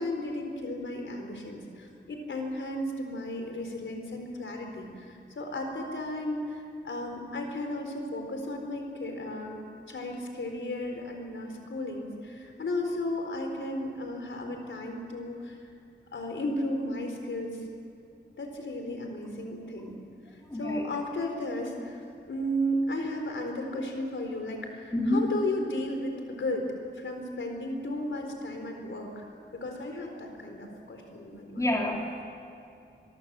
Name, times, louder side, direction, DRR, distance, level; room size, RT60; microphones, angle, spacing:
voice 1, 0.0-15.6 16.1-17.6 18.4-20.0 20.3-26.7 26.9-29.2 29.5-31.7, left 1 dB, 85° left, 3 dB, 4.1 m, -34 dB
voice 2, 20.5-20.8 24.9-25.3 31.6-32.2, left 1 dB, 15° left, 0 dB, 3.4 m, -28 dB
25.0 x 22.0 x 7.6 m, 2.7 s
wide cardioid pair, 135°, 19 cm